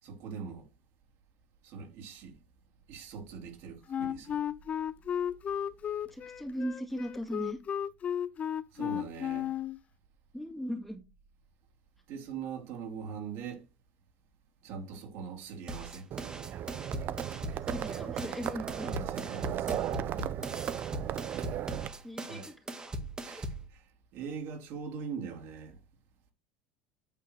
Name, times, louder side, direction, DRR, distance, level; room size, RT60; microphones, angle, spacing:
voice 1, 0.0-0.7 1.6-2.4 2.9-4.4 8.7-9.5 12.1-13.6 14.6-16.1 18.8-20.0 22.3-22.4 23.2-23.5 24.1-25.8, right 6 dB, 60° right, 3.3 m, -42 dB
Wind instrument woodwind instrument, 3.9-9.8, left 9 dB, 30° left, 0.4 m, -34 dB
voice 2, 6.1-7.6 10.3-11.0 12.1-12.2 17.7-18.9 19.2-19.3 22.0-22.5 22.8-22.9 23.3-23.4, equal, 5° left, 2.0 m, -38 dB
sound 1, 15.7-23.7, right 1 dB, 15° right, 1.8 m, -39 dB
Livestock farm animals working animals, 16.1-21.9, right 11 dB, 45° right, 0.6 m, -36 dB
8.9 x 3.9 x 6.5 m
supercardioid pair, 120°, 5 cm